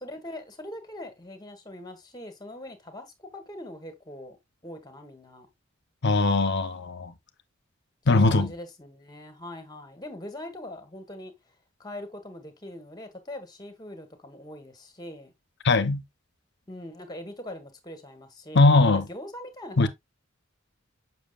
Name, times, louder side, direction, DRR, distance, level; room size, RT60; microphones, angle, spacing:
voice 1, 0.0-4.4 4.6-5.5 8.1-11.3 11.8-15.3 16.7-19.9, left 1 dB, 20° left, 1.4 m, -42 dB
voice 2, 6.0-7.1 8.1-8.5 15.6-16.0 18.5-19.1 19.8-19.9, left 3 dB, 55° left, 0.8 m, -20 dB
7.3 x 5.9 x 2.4 m
head